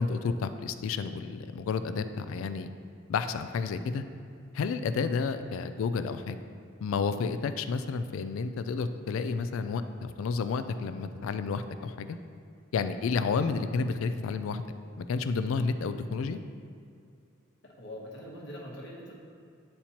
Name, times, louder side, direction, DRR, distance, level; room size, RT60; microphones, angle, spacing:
voice 1, 0.0-2.7 3.1-4.0 4.5-6.4 6.8-12.2 12.7-14.6 15.0-16.4, left 5 dB, 70° left, 10 dB, 0.3 m, -31 dB
voice 2, 17.6-19.1, equal, 55° left, -3 dB, 1.0 m, -43 dB
8.4 x 4.3 x 2.9 m, 2.4 s
head